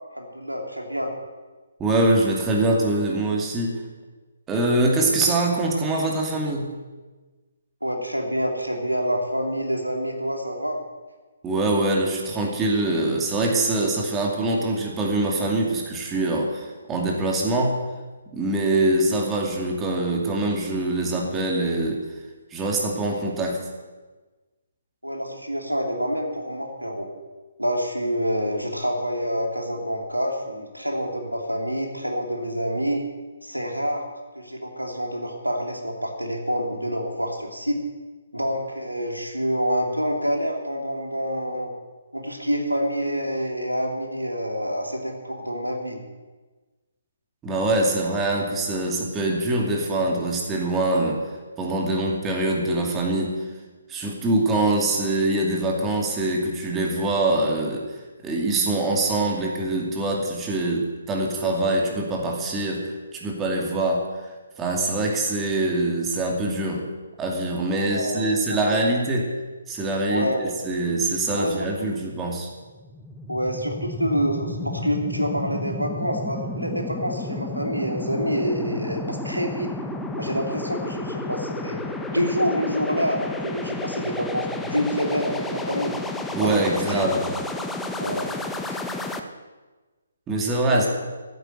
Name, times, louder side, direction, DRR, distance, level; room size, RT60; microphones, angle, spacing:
voice 1, 0.1-1.1 7.8-10.8 25.0-27.1 27.6-33.0 33.4-34.0 34.3-37.8 38.3-41.7 42.1-46.0 67.8-68.8 70.1-70.6 71.3-71.5 73.3-79.7 80.2-81.8 82.1-86.0 86.4-86.5 86.9-87.1 88.0-88.3 88.7-88.8 90.7-90.9, equal, 90° right, 2 dB, 2.9 m, -27 dB
voice 2, 1.8-3.8 4.5-6.7 11.4-17.8 18.3-22.1 22.5-23.7 47.4-53.5 53.9-66.9 67.2-69.3 69.7-70.3 70.6-72.5 86.3-87.3 90.3-90.9, right 2 dB, 15° right, -1 dB, 2.5 m, -24 dB
sound 1, 72.7-89.2, left 2 dB, 5° left, 0.9 m, -32 dB
14.0 x 9.4 x 7.9 m, 1.3 s
figure-of-eight pair, 135°, 0 cm